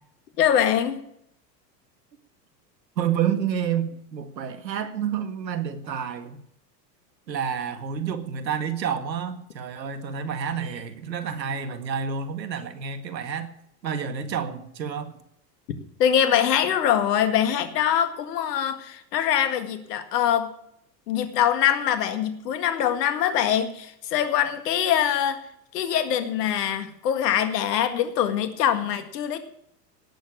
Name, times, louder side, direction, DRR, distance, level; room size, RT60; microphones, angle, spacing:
voice 1, 0.4-1.0 16.0-20.5 21.1-25.4 25.7-29.4, left 9 dB, 75° left, 9 dB, 1.9 m, -23 dB
voice 2, 3.0-6.4 7.3-13.5 13.8-15.1, right 7 dB, 90° right, 11 dB, 1.8 m, -29 dB
18.0 x 7.0 x 7.1 m, 0.72 s
hypercardioid pair, 100°, 49 cm